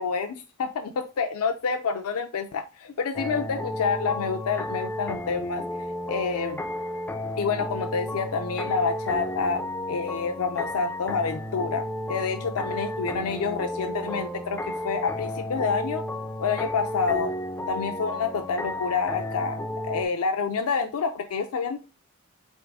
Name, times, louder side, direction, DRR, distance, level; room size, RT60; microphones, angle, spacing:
voice 1, 0.0-5.6 6.1-6.6 7.4-9.6 9.9-16.0 16.4-17.3 17.7-21.8, left 5 dB, 70° left, 4 dB, 0.4 m, -28 dB
sound 1, 3.2-20.1, left 1 dB, 10° left, 0.4 m, -33 dB
3.9 x 3.6 x 3.5 m, 0.32 s
head